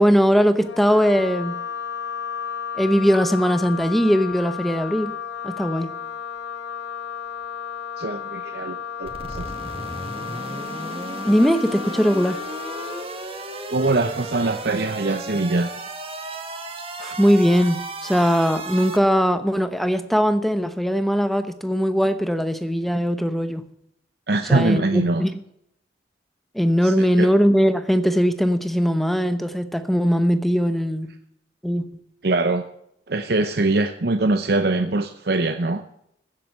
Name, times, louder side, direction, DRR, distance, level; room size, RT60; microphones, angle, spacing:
voice 1, 0.0-1.6 2.8-5.1 5.4-5.9 11.2-12.4 17.0-23.6 24.5-25.4 26.5-31.1 31.6-31.9, equal, ahead, 0.9 m, -20 dB
Wind instrument woodwind instrument, 0.6-13.1, left 7 dB, 85° left, 1.5 m, -33 dB
voice 2, 8.0-9.5 13.7-15.7 24.3-25.2 26.8-26.9 27.2-27.3 32.2-32.6 33.1-35.8, right 2 dB, 60° right, 0.7 m, -22 dB
sound 1, 9.0-19.0, right 2 dB, 30° right, 1.9 m, -34 dB
15.5 x 7.6 x 6.5 m
head